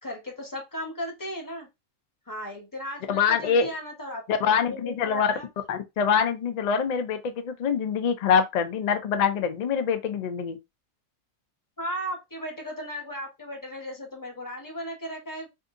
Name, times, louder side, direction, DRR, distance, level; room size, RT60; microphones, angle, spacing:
voice 1, 0.0-1.7 2.3-5.5 11.8-15.5, equal, 15° left, 0.9 m, -36 dB
voice 2, 3.1-3.7 4.3-5.3 5.7-10.6, left 6 dB, 70° left, 0.4 m, -24 dB
2.7 x 2.6 x 3.6 m
omnidirectional pair, 1.4 m